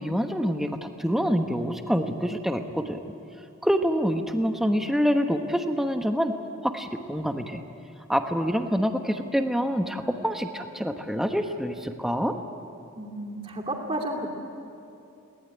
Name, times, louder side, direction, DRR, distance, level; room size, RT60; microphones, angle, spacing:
voice 1, 0.0-3.0 3.6-6.3 6.6-7.6 8.1-12.3, equal, ahead, 5 dB, 1.2 m, -26 dB
voice 2, 12.9-14.3, right 1 dB, 25° right, 1 dB, 2.7 m, -32 dB
21.5 x 19.0 x 9.8 m, 2.7 s
head